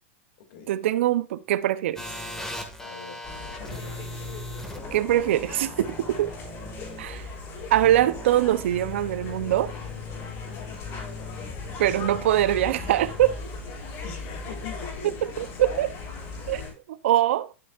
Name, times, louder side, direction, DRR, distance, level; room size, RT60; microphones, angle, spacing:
voice 1, 0.7-2.0 4.9-6.3 7.0-7.3 7.7-9.7 11.8-13.4 15.2-15.9 16.5-16.6 16.9-17.5, right 13 dB, 70° right, 0.7 m, -23 dB
sound 1, 2.0-14.9, left 2 dB, 5° left, 1.9 m, -40 dB
voice 2, 2.8-4.1 10.4-10.7 14.0-15.9, left 6 dB, 60° left, 2.4 m, -43 dB
sound 2, 3.2-16.7, left 4 dB, 40° left, 3.7 m, -39 dB
12.5 x 6.4 x 2.5 m
hypercardioid pair, 130°, 7 cm